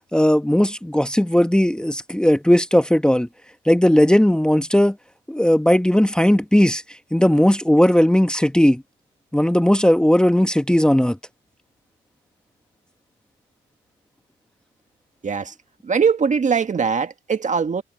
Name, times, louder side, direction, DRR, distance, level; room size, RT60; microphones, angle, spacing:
voice 1, 0.1-3.3 3.7-4.9 5.3-6.8 7.1-8.8 9.3-11.2, equal, 5° left, 1.3 m, -17 dB
voice 2, 15.2-15.5 15.8-17.8, right 6 dB, 40° right, 1.7 m, -21 dB
cardioid pair, 90°, 20 cm